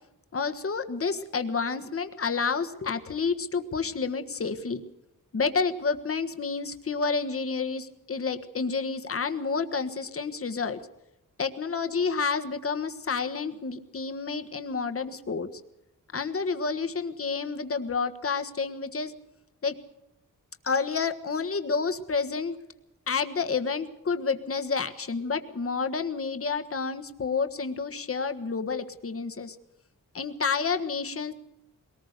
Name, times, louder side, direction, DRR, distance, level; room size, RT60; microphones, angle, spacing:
voice 1, 0.3-4.8 5.3-10.8 11.4-15.5 16.1-19.1 19.6-19.8 20.6-22.6 23.1-29.6 30.1-31.3, left 5 dB, 40° left, 7 dB, 1.5 m, -29 dB
22.5 x 19.0 x 6.7 m, 0.88 s
wide cardioid pair, 150°, 35 cm